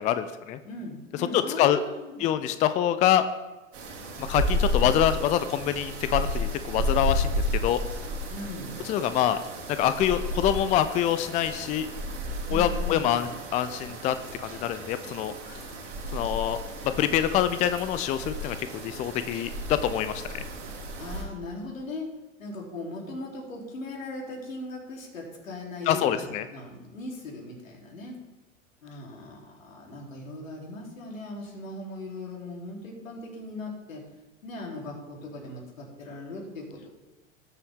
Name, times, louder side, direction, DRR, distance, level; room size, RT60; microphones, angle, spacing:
voice 1, 0.0-0.6 1.2-1.8 2.2-3.2 4.2-7.8 8.8-9.4 9.8-11.9 12.5-15.6 16.1-16.6 17.0-20.4 25.9-26.4, left 11 dB, 20° left, 11 dB, 0.4 m, -25 dB
voice 2, 0.6-2.3 8.3-8.9 12.5-13.3 21.0-22.1 22.4-26.2 26.5-28.2 28.8-34.0 34.4-36.9, left 2 dB, 75° left, -2 dB, 3.3 m, -39 dB
sound 1, 3.7-21.2, equal, 65° right, 3.7 m, -32 dB
18.5 x 6.9 x 3.6 m, 1.1 s
figure-of-eight pair, 90°, 40 cm